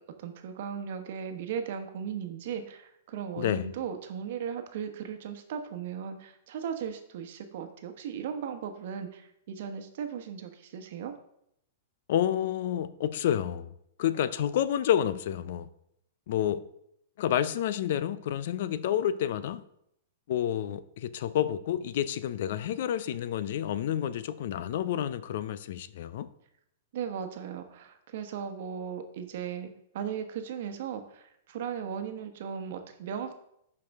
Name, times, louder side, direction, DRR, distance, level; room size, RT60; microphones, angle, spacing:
voice 1, 0.2-11.1 26.9-33.3, right 7 dB, 60° right, 1.0 m, -37 dB
voice 2, 3.4-3.7 12.1-13.7 14.0-15.7 16.3-16.6 17.2-19.6 20.3-26.3, left 10 dB, 60° left, 0.5 m, -29 dB
11.5 x 4.8 x 3.5 m
hypercardioid pair, 140°, 0 cm